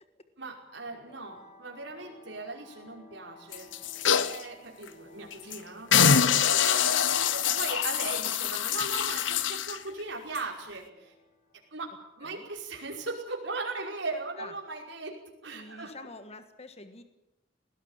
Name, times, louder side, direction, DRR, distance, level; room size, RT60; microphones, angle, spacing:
voice 1, 0.4-3.7 4.1-5.9 6.5-11.1 11.7-11.9 12.2-15.1 15.4-16.0, right 3 dB, 75° right, -1 dB, 5.4 m, -38 dB
sound 1, 0.7-14.8, left 2 dB, 50° left, 5.2 m, -58 dB
sound 2, 3.5-4.4 4.9-5.0 5.3-5.6 5.9-9.8 10.3-10.4, left 8 dB, 85° left, 1.0 m, -25 dB
voice 2, 15.5-17.0, left 2 dB, 35° left, 9 dB, 1.6 m, -46 dB
20.0 x 17.5 x 9.0 m, 0.95 s
head